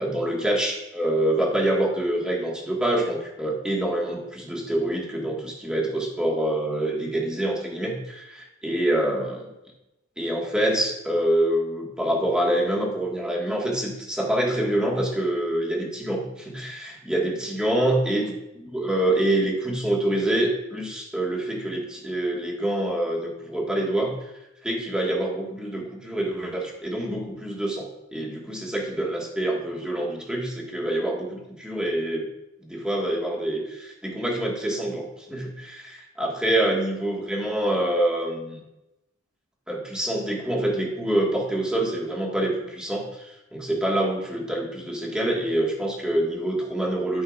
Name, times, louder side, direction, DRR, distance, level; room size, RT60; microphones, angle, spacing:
voice 1, 0.0-9.5 10.2-24.3 24.6-32.3 32.6-38.6 39.7-47.2, right 1 dB, 5° right, -3 dB, 1.5 m, -26 dB
12.0 x 5.6 x 2.4 m, 0.94 s
head